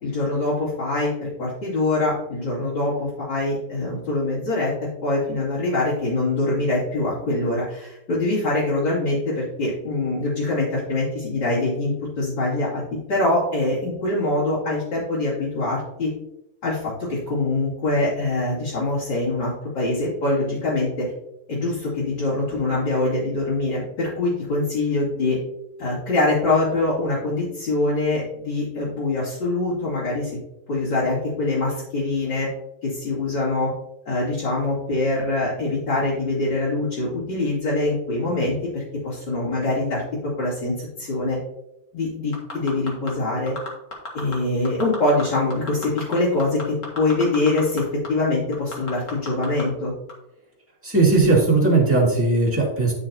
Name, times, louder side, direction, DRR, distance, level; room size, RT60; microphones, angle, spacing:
voice 1, 0.0-4.7 5.0-12.8 13.1-16.1 16.6-21.1 21.5-25.4 25.8-30.4 30.7-32.5 32.8-33.7 34.1-41.4 41.9-43.5 44.1-49.9, left 2 dB, 60° left, -11 dB, 3.6 m, -24 dB
sound 1, 42.3-43.1 43.5-44.3 44.6-45.2 45.5-47.8 48.0-48.1 48.5-49.6 50.1-50.2, left 3 dB, 40° left, 2.0 m, -33 dB
voice 2, 50.8-52.9, right 3 dB, 5° right, -4 dB, 2.1 m, -18 dB
10.0 x 6.2 x 2.8 m, 0.87 s
omnidirectional pair, 2.3 m